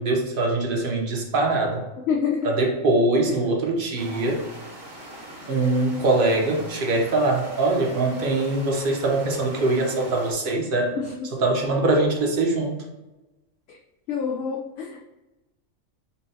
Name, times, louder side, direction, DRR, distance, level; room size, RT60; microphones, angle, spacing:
voice 1, 0.0-1.8 2.4-4.4 5.5-10.9 11.4-12.8, right 2 dB, 50° right, 0 dB, 0.9 m, -22 dB
voice 2, 2.1-2.5 3.3-3.4 10.9-11.3 13.7-13.8 14.1-15.0, left 6 dB, 65° left, -1 dB, 0.7 m, -27 dB
sound 1, 4.0-10.3, right 1 dB, 80° right, 1.6 m, -42 dB
5.5 x 2.4 x 2.7 m, 1.1 s
omnidirectional pair, 1.4 m